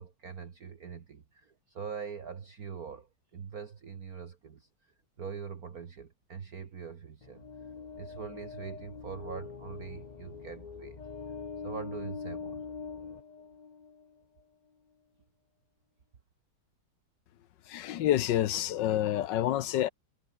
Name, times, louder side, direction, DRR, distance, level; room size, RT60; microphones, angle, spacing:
voice 1, 0.0-11.0 11.6-12.6, right 6 dB, 50° right, 1.9 m, -43 dB
sound 1, 7.2-14.1, left 5 dB, 35° left, 0.6 m, -43 dB
voice 2, 17.7-19.9, left 12 dB, 65° left, 1.4 m, -28 dB
omnidirectional pair, 2.2 m